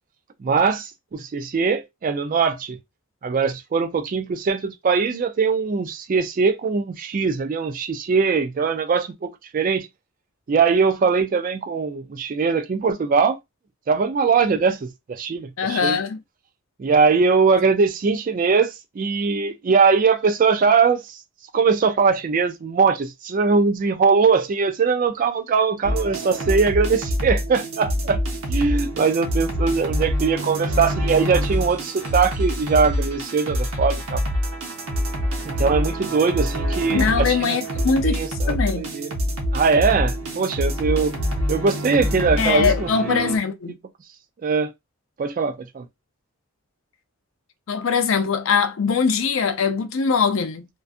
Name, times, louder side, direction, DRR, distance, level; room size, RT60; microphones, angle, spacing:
voice 1, 0.4-2.8 3.2-9.9 10.5-13.4 13.9-16.0 16.8-21.2 21.5-28.2 28.5-34.2 35.5-37.6 38.0-39.1 39.5-41.1 41.5-43.3 44.4-44.7 45.2-45.9, right 5 dB, 40° right, 0.3 m, -21 dB
voice 2, 15.6-16.2 36.9-38.2 38.5-38.9 42.4-43.7 47.7-50.7, left 5 dB, 60° left, 0.4 m, -22 dB
sound 1, 25.8-43.4, equal, 85° right, 0.9 m, -26 dB
2.5 x 2.3 x 2.4 m
head